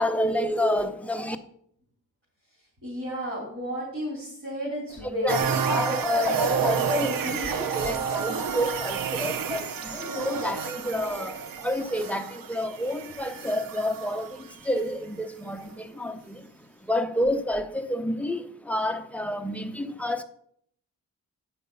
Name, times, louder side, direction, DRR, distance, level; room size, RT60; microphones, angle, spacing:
voice 1, 0.0-1.4 5.2-20.2, left 1 dB, 5° left, 0.6 m, -29 dB
voice 2, 2.8-5.3 6.2-6.5, equal, 35° right, 3.6 m, -33 dB
sound 1, 5.3-14.4 14.8-14.9, right 6 dB, 75° right, 0.7 m, -30 dB
8.5 x 5.6 x 5.5 m
wide cardioid pair, 140°, 34 cm